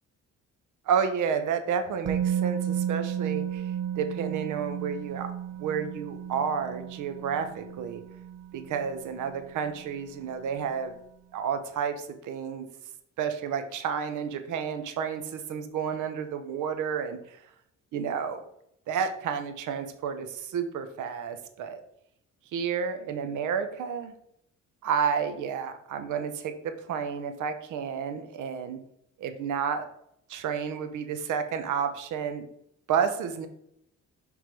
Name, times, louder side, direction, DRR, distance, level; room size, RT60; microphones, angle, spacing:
voice 1, 0.9-5.3 5.6-8.0 8.5-10.9 11.3-12.7 13.2-17.4 17.9-18.4 18.9-21.8 22.5-24.1 24.8-28.8 29.2-29.9 30.3-32.4 32.9-33.5, right 7 dB, 80° right, 8 dB, 1.0 m, -31 dB
Musical instrument, 2.1-10.0 10.2-10.4, right 9 dB, 60° right, 0.7 m, -33 dB
6.1 x 3.6 x 4.7 m, 0.73 s
cardioid pair, 90°, 30 cm